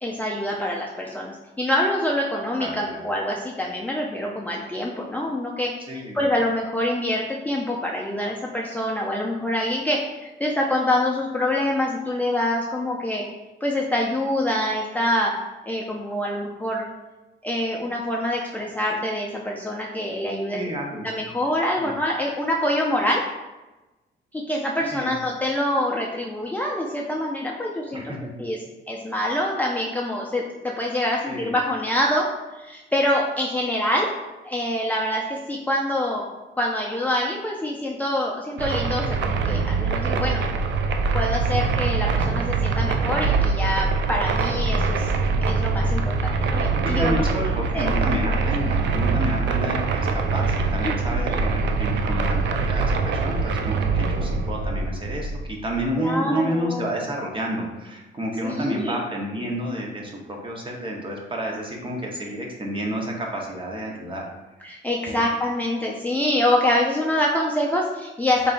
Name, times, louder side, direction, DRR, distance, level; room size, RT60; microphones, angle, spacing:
voice 1, 0.0-13.2 13.6-15.3 15.7-16.9 17.4-20.6 20.9-23.2 24.3-28.1 28.4-32.3 32.6-34.1 34.4-36.3 36.6-40.4 41.1-45.1 45.4-47.5 47.7-47.9 50.8-51.4 56.0-56.9 58.4-59.0 64.6-68.5, left 1 dB, 10° left, -3 dB, 0.4 m, -25 dB
voice 2, 2.6-3.0 5.9-6.2 20.5-21.1 21.8-22.0 24.9-25.1 27.9-28.2 31.3-31.5 46.8-64.3 65.0-65.3, right 1 dB, 25° right, 0 dB, 0.9 m, -30 dB
sound 1, 38.6-55.9, right 4 dB, 65° right, 0.4 m, -23 dB
3.8 x 3.4 x 2.5 m, 1.1 s
cardioid pair, 90°, 20 cm